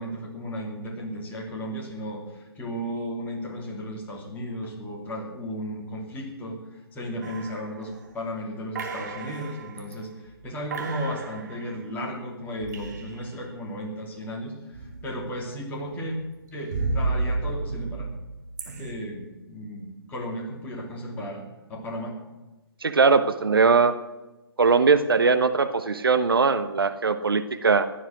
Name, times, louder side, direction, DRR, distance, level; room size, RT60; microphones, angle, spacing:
voice 1, 0.0-16.2 16.5-18.1 18.6-21.4 21.7-22.2, equal, 15° left, -1 dB, 2.9 m, -35 dB
sound 1, 7.2-8.2 8.8-10.0 10.3-10.5 10.7-13.4 14.7-15.4 15.8-18.9, right 3 dB, 45° right, 2.6 m, -33 dB
voice 2, 22.8-24.0 24.6-27.9, right 4 dB, 65° right, 11 dB, 1.0 m, -20 dB
16.0 x 12.0 x 6.3 m, 1.1 s
figure-of-eight pair, 135°, 13 cm